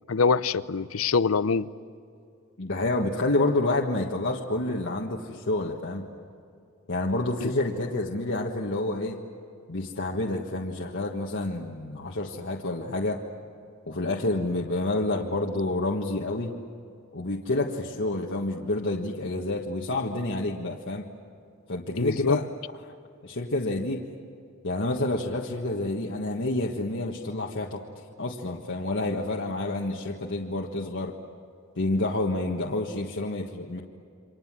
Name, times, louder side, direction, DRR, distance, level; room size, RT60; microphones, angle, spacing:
voice 1, 0.1-1.7 7.4-7.5 22.0-22.4, left 5 dB, 80° left, 0.7 m, -24 dB
voice 2, 2.6-6.1 6.9-9.2 9.7-13.2 13.9-16.5 17.1-21.1 21.7-22.5 22.9-23.0 23.2-24.0 24.6-27.8 28.2-31.1 31.7-33.8, left 2 dB, 60° left, 1.6 m, -28 dB
29.0 x 25.5 x 7.5 m
head